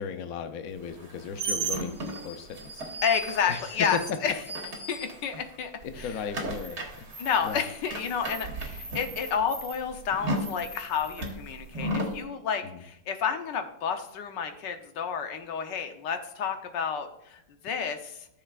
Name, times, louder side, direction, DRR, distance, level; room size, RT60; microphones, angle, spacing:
voice 1, 0.0-2.8 3.5-3.6 3.9-4.2 6.0-7.0 7.4-7.7 12.6-12.8, left 6 dB, 60° left, 8 dB, 1.1 m, -36 dB
sound 1, 0.9-5.5 5.8-12.2, right 2 dB, 60° right, 2.1 m, -35 dB
voice 2, 3.0-4.4 4.9-6.3 7.2-18.3, left 7 dB, 80° left, 7 dB, 1.5 m, -30 dB
13.5 x 6.6 x 2.4 m, 0.80 s
omnidirectional pair, 1.9 m